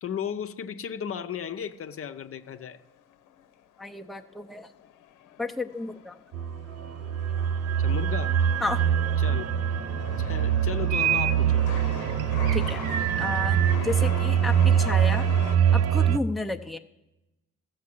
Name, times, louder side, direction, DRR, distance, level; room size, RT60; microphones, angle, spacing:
voice 1, 0.0-2.8 7.8-8.4 9.2-9.6 10.2-11.7, left 8 dB, 45° left, 0.7 m, -35 dB
Chatter / Subway metro underground, 1.3-15.6, left 10 dB, 90° left, 0.8 m, -43 dB
voice 2, 3.8-4.7 5.4-6.2 8.6-8.8 12.5-12.9 13.2-15.3 15.7-16.8, left 2 dB, ahead, 0.6 m, -32 dB
sound 1, 6.3-16.2, right 9 dB, 55° right, 0.6 m, -24 dB
sound 2, 10.9-11.4 11.8-13.7, right 11 dB, 90° right, 0.8 m, -28 dB
14.0 x 6.5 x 7.7 m
cardioid pair, 90°, 30 cm